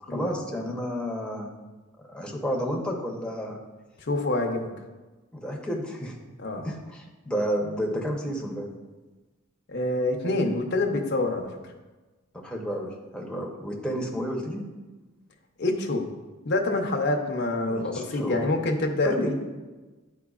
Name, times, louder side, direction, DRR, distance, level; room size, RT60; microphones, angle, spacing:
voice 1, 0.0-1.5 2.1-3.6 5.3-6.2 6.6-8.7 12.3-14.6 17.7-18.4 19.0-19.3, equal, 5° left, -1 dB, 0.8 m, -31 dB
voice 2, 4.1-4.7 6.4-6.7 9.7-11.5 15.6-16.0 16.4-19.4, left 2 dB, 50° left, 2 dB, 0.7 m, -26 dB
10.0 x 4.5 x 2.4 m, 1.2 s
head